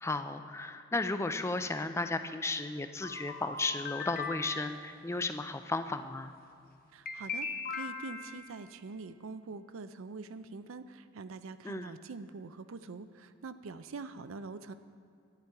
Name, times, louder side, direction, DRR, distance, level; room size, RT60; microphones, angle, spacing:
voice 1, 0.0-6.3 11.6-11.9, left 3 dB, 15° left, 9 dB, 0.4 m, -34 dB
sound 1, 3.0-4.9 7.1-8.6, left 4 dB, 45° left, 0.8 m, -39 dB
voice 2, 6.9-14.7, right 4 dB, 85° right, 12 dB, 0.5 m, -44 dB
10.5 x 9.7 x 4.7 m, 2.4 s
head